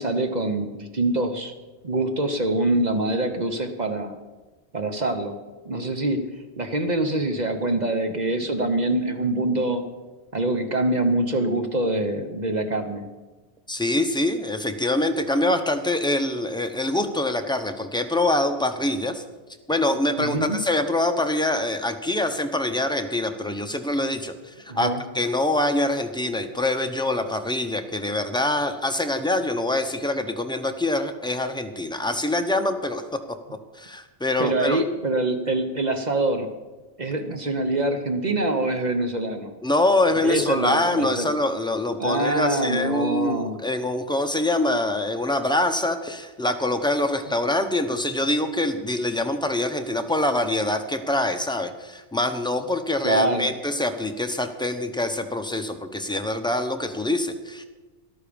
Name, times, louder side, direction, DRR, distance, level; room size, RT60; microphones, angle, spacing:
voice 1, 0.0-1.5 1.8-4.1 4.7-5.3 5.6-6.2 6.6-9.8 10.3-13.1 20.2-20.6 24.7-25.0 34.4-36.5 37.0-39.5 40.2-41.3 42.0-43.6 53.0-53.5, right 2 dB, 40° right, 6 dB, 1.0 m, -24 dB
voice 2, 13.7-19.2 19.7-33.0 33.7-34.8 39.6-57.6, left 1 dB, 5° left, 6 dB, 0.7 m, -24 dB
13.5 x 11.5 x 5.2 m, 1.2 s
omnidirectional pair, 1.2 m